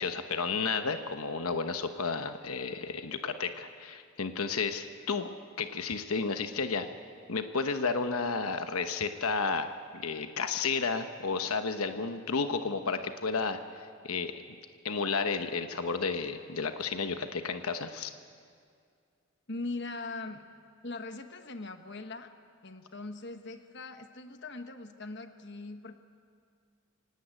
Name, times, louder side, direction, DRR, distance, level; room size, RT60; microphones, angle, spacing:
voice 1, 0.0-5.3 5.6-6.9 7.3-14.3 14.8-18.1, left 4 dB, 85° left, 8 dB, 1.1 m, -32 dB
voice 2, 19.5-20.4 20.8-22.3 22.6-26.0, left 3 dB, 50° left, 7 dB, 1.3 m, -40 dB
25.0 x 18.0 x 9.0 m, 2.2 s
head